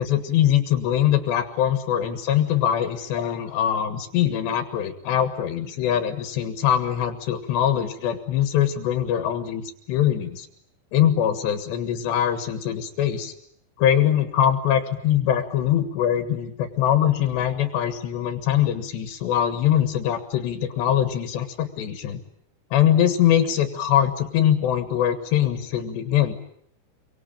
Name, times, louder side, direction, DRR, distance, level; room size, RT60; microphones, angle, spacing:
voice 1, 0.0-10.5 10.9-13.3 13.8-22.2 22.7-26.3, left 10 dB, 85° left, 9 dB, 3.9 m, -22 dB
27.5 x 24.0 x 8.9 m, 0.70 s
omnidirectional pair, 4.8 m